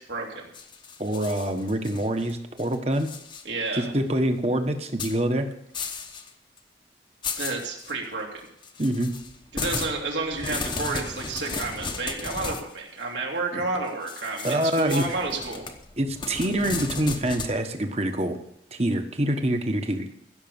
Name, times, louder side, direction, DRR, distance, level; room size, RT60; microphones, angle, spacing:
voice 1, 0.1-0.4 3.4-3.9 7.4-8.4 9.5-15.7, right 3 dB, 80° right, 0 dB, 3.1 m, -30 dB
sound 1, 0.5-2.3 2.6-3.4 3.8-3.9 5.0-5.2 5.7-6.3 6.6-6.7 7.2-7.9 8.6-12.7 14.1-17.5, left 4 dB, 25° left, 1.0 m, -35 dB
voice 2, 1.0-3.1 3.7-5.5 8.8-9.1 13.5-13.6 14.4-15.0 16.0-18.4 18.7-20.1, right 1 dB, 35° right, 6 dB, 1.3 m, -25 dB
16.0 x 6.9 x 7.1 m, 0.74 s
head